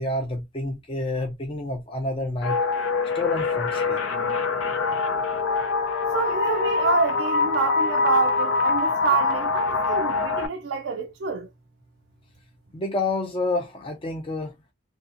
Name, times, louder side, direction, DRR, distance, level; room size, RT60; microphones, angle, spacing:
voice 1, 0.0-2.6 3.1-4.0 12.7-14.6, left 2 dB, 25° left, 0.5 m, -28 dB
sound 1, 2.4-10.5, left 4 dB, 75° left, 0.5 m, -24 dB
voice 2, 6.1-11.5, right 4 dB, 65° right, 0.4 m, -27 dB
2.7 x 2.3 x 2.5 m
head